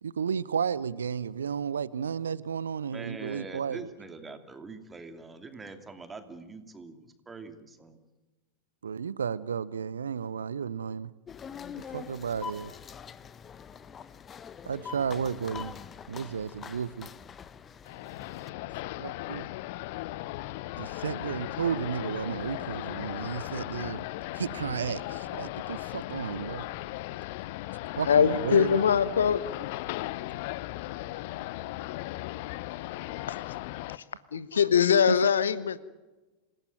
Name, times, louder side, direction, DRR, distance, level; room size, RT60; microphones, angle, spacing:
voice 1, 0.0-3.9 8.8-11.1 11.9-12.7 14.7-15.7 16.1-17.1 19.0-19.5 20.8-24.0 24.4-26.6 28.0-28.8 34.5-34.6 35.1-35.2, right 7 dB, 70° right, 20 dB, 0.7 m, -33 dB
voice 2, 2.9-8.0, right 3 dB, 15° right, 7 dB, 2.7 m, -44 dB
sound 1, 11.3-18.5, left 7 dB, 25° left, 1.0 m, -44 dB
sound 2, 17.8-34.0, left 17 dB, 50° left, 0.7 m, -37 dB
voice 3, 28.1-29.5 33.3-33.4 34.3-35.8, left 7 dB, 65° left, 16 dB, 1.1 m, -22 dB
27.5 x 18.0 x 9.2 m, 1.2 s
figure-of-eight pair, 90°, 0 cm